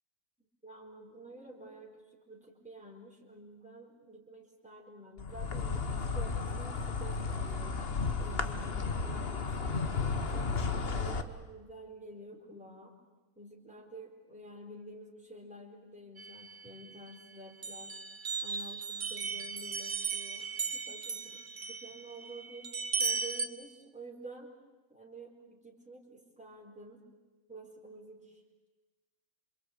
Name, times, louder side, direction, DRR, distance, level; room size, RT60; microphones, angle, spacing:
voice 1, 0.6-7.8 8.2-10.5 11.0-13.0 13.4-18.0 18.4-21.2 21.7-22.7 23.0-24.5 24.9-27.1 27.5-28.4, right 2 dB, 5° right, -1 dB, 4.1 m, -50 dB
Insect, 5.2-11.2, left 4 dB, 45° left, 1.5 m, -33 dB
sound 1, 16.2-17.2 17.6-23.5, right 5 dB, 35° right, 1.3 m, -37 dB
27.5 x 25.0 x 8.6 m, 1.2 s
omnidirectional pair, 1.5 m